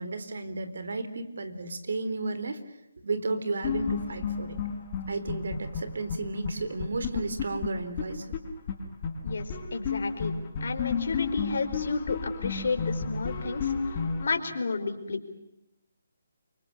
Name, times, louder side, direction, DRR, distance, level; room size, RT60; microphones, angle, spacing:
voice 1, 0.0-2.6 3.0-4.6 5.1-8.3, right 3 dB, 65° right, 11 dB, 3.8 m, -33 dB
sound 1, 3.6-6.2 6.4-6.5 6.8-8.4 8.7-8.8 9.0-14.3, left 5 dB, 35° left, 5.3 m, -32 dB
voice 2, 9.2-10.3 10.6-15.2, left 4 dB, 65° left, 6 dB, 4.7 m, -32 dB
28.5 x 24.5 x 7.0 m, 0.89 s
figure-of-eight pair, 150°, 0 cm